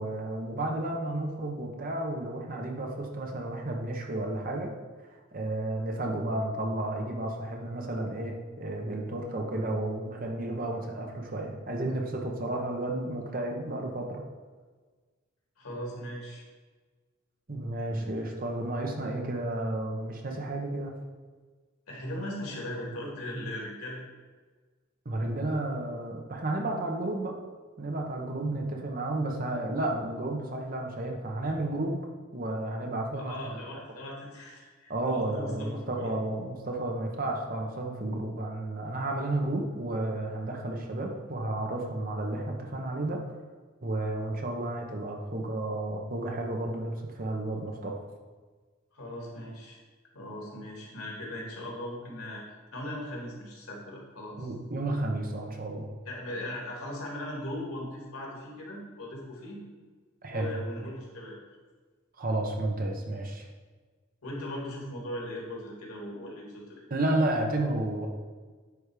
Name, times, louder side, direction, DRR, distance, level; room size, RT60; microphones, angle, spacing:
voice 1, 0.0-4.7 5.3-14.2 17.5-20.9 25.0-27.3 27.8-32.0 32.3-33.6 34.9-43.2 43.8-48.0 54.4-55.9 60.2-60.5 62.2-63.5 66.9-68.1, right 1 dB, 40° right, 1 dB, 0.9 m, -32 dB
voice 2, 15.6-16.4 17.9-18.3 21.9-24.0 33.2-36.1 48.9-49.8 50.1-52.5 52.7-54.5 56.1-59.6 60.3-61.4 64.2-66.8, left 1 dB, 90° left, -2 dB, 2.2 m, -39 dB
9.5 x 3.5 x 4.9 m, 1.4 s
head